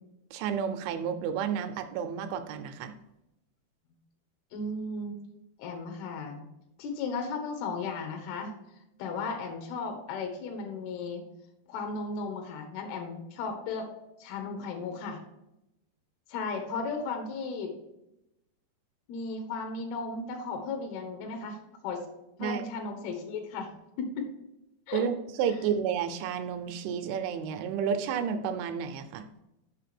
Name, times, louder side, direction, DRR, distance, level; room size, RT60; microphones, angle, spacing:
voice 1, 0.3-2.9 22.4-22.6 24.9-29.2, right 7 dB, 80° right, 8 dB, 2.8 m, -31 dB
voice 2, 4.5-5.2 5.6-6.4 6.8-8.5 9.0-11.3 11.7-13.9 14.2-15.2 16.3-17.7 19.1-21.6 21.8-22.1 22.4-23.7 24.0-24.3 24.9-25.0, left 4 dB, 70° left, 4 dB, 2.5 m, -35 dB
6.6 x 5.6 x 5.9 m, 0.89 s
omnidirectional pair, 5.5 m